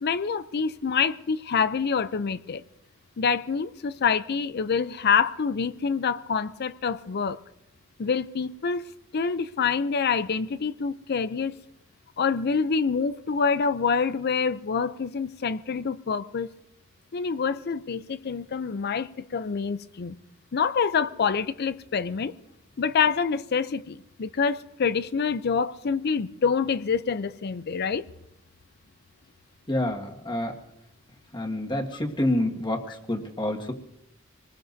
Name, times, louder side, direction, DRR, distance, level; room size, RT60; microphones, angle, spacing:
voice 1, 0.0-2.6 3.2-7.4 8.0-8.8 9.1-11.5 12.2-16.5 17.1-20.2 20.5-22.3 22.8-28.1, left 5 dB, 50° left, 0.5 m, -26 dB
voice 2, 29.7-30.6 31.3-33.7, left 1 dB, 25° left, 1.7 m, -28 dB
26.0 x 20.5 x 2.7 m
head